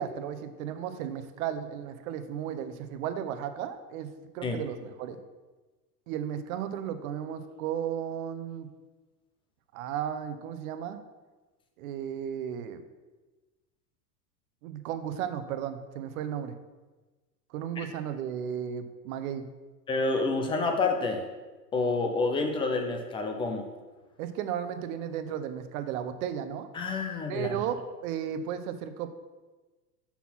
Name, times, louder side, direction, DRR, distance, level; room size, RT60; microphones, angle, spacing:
voice 1, 0.0-5.2 6.1-8.7 9.7-11.0 11.8-12.8 14.6-16.5 17.5-19.5 24.2-26.7 27.3-27.8 28.0-29.1, right 9 dB, 60° right, 10 dB, 0.8 m, -34 dB
voice 2, 19.9-21.2 21.7-23.7 26.7-27.6, left 3 dB, 10° left, 4 dB, 0.3 m, -28 dB
5.7 x 4.2 x 5.9 m, 1.2 s
hypercardioid pair, 120°, 48 cm